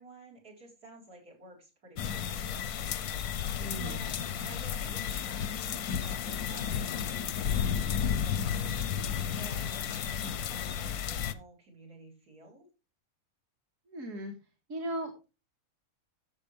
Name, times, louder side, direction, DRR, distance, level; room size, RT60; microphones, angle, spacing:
voice 1, 0.0-12.6, right 2 dB, 80° right, 2 dB, 5.0 m, -53 dB
sound 1, 2.0-11.3, left 8 dB, 85° left, 1.2 m, -32 dB
voice 2, 3.6-4.0 13.9-14.3 14.7-15.3, right 1 dB, 60° right, 0 dB, 2.2 m, -37 dB
13.0 x 7.2 x 3.4 m, 0.29 s
omnidirectional pair, 1.6 m